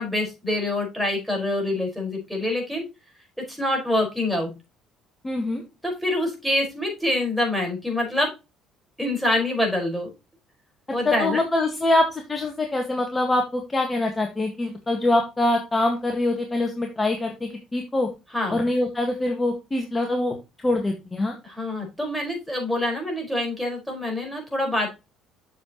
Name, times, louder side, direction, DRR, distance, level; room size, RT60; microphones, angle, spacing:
voice 1, 0.0-2.8 3.5-4.5 5.8-8.3 9.0-10.1 10.9-11.4 18.3-18.6 21.4-24.9, left 1 dB, ahead, 0 dB, 5.0 m, -26 dB
voice 2, 5.2-5.6 11.0-18.1 18.5-20.3 20.6-21.3, left 2 dB, 20° left, 3 dB, 1.6 m, -24 dB
7.6 x 6.8 x 3.0 m, 0.26 s
supercardioid pair, 75°, 0 cm